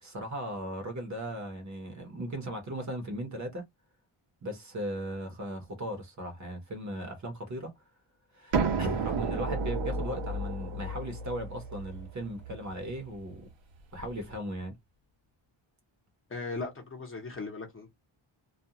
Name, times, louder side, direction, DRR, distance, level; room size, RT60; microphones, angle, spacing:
voice 1, 0.0-3.6 4.4-7.7 8.3-13.5 13.9-14.7, right 1 dB, 35° right, 0.8 m, -37 dB
sound 1, 8.5-14.1, right 3 dB, 65° right, 0.7 m, -33 dB
voice 2, 16.3-17.9, left 3 dB, 25° left, 0.8 m, -38 dB
2.4 x 2.2 x 2.8 m
wide cardioid pair, 180°, 49 cm